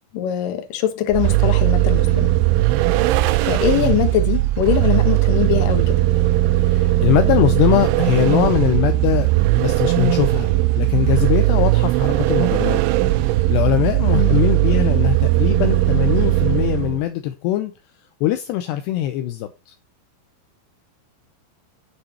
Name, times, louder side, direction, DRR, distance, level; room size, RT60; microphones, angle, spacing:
voice 1, 0.1-2.3 3.4-6.0 14.1-14.4, left 11 dB, 60° left, 2.5 m, -22 dB
Vehicle, 1.1-17.0, right 17 dB, 90° right, 3.1 m, -18 dB
voice 2, 6.6-9.3 9.6-12.8 13.1-17.7 18.2-19.7, left 13 dB, 80° left, 2.7 m, -21 dB
9.3 x 6.5 x 4.2 m
omnidirectional pair, 5.2 m